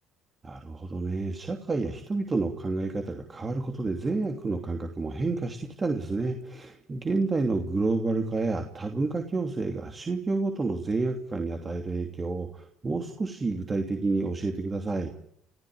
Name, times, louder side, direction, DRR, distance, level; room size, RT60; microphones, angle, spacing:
voice 1, 0.4-15.1, right 3 dB, 30° right, 4 dB, 3.0 m, -29 dB
29.0 x 15.5 x 9.4 m, 0.72 s
hypercardioid pair, 70°, 0 cm